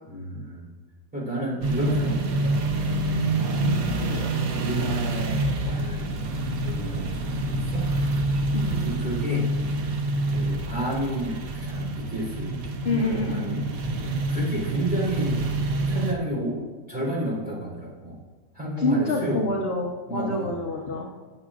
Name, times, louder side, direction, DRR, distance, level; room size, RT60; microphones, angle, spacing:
voice 1, 0.1-0.7 1.1-2.5 3.4-4.0 4.4-6.1 6.6-7.8 8.8-9.5 10.3-13.7 14.3-15.4 15.9-16.6 16.9-18.2 18.6-19.5 20.1-20.5, right 1 dB, 5° right, -7 dB, 3.4 m, -31 dB
sound 1, 1.6-16.1, right 2 dB, 60° right, 1.2 m, -27 dB
voice 2, 4.0-4.3 8.5-8.8 12.8-13.5 18.8-21.1, left 2 dB, 45° left, -1 dB, 0.9 m, -27 dB
19.0 x 7.1 x 2.5 m, 1.3 s
omnidirectional pair, 1.9 m